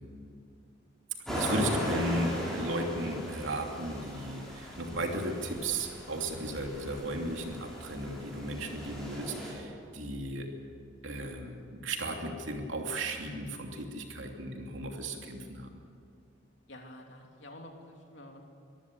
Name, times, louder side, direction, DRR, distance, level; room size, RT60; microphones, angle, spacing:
sound 1, 1.3-9.5, equal, ahead, 6.1 m, -38 dB
voice 1, 1.3-10.5 11.0-15.7, right 1 dB, 85° right, 2 dB, 2.9 m, -35 dB
voice 2, 16.7-18.4, left 1 dB, 70° left, 2 dB, 3.1 m, -49 dB
23.5 x 14.5 x 8.5 m, 2.4 s
head